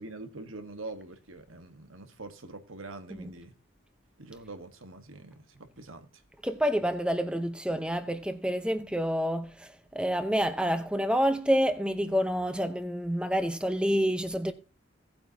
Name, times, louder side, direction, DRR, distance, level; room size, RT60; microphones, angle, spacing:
voice 1, 0.0-3.5 4.2-6.2, right 2 dB, 85° right, 1.5 m, -44 dB
voice 2, 6.4-14.5, equal, 5° right, 0.8 m, -28 dB
17.0 x 8.6 x 2.9 m
head